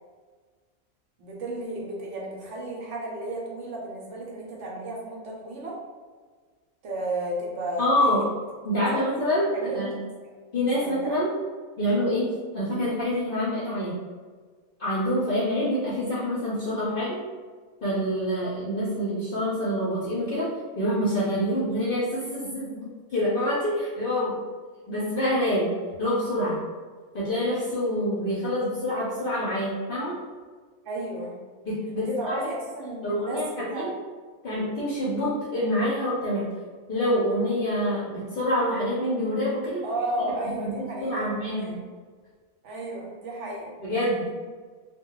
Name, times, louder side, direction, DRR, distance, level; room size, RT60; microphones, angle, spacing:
voice 1, 1.2-5.8 6.8-8.2 8.9-9.0 9.5-10.0 10.8-11.2 30.9-31.4 32.0-33.9 39.8-41.8 42.6-43.7, right 1 dB, 65° right, -3 dB, 0.9 m, -33 dB
voice 2, 7.8-8.2 8.6-10.0 10.5-11.3 11.8-13.9 14.8-17.2 17.8-20.5 20.8-24.4 24.9-25.7 26.0-26.6 27.1-30.1 31.6-32.5 33.0-33.9 34.4-36.4 36.9-39.8 40.4-41.8 43.8-44.2, equal, 55° left, -7 dB, 0.6 m, -26 dB
2.2 x 2.1 x 3.7 m, 1.5 s
omnidirectional pair, 1.4 m